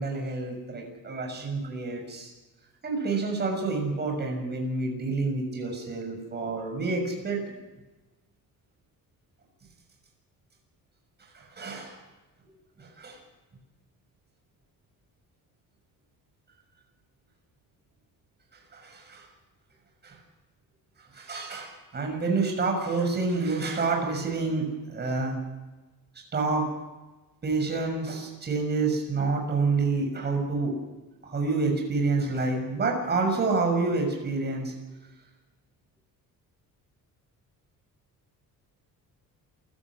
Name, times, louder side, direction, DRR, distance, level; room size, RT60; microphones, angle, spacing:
voice 1, 0.0-2.3 2.8-7.4 11.3-11.9 13.0-13.2 18.7-19.2 20.0-20.1 21.1-25.4 26.3-26.7 27.4-30.7 31.2-34.7, right 3 dB, 30° right, 2 dB, 6.5 m, -28 dB
27.5 x 16.0 x 6.3 m, 1.1 s
cardioid pair, 160°, 34 cm